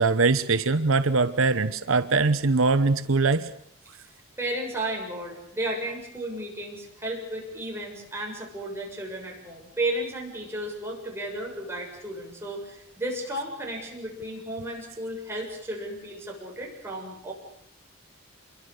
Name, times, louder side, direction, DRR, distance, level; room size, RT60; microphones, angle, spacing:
voice 1, 0.0-3.5, right 3 dB, 75° right, 12 dB, 0.9 m, -22 dB
voice 2, 4.4-17.3, right 1 dB, 10° right, -1 dB, 7.2 m, -33 dB
27.0 x 23.0 x 6.7 m, 0.69 s
head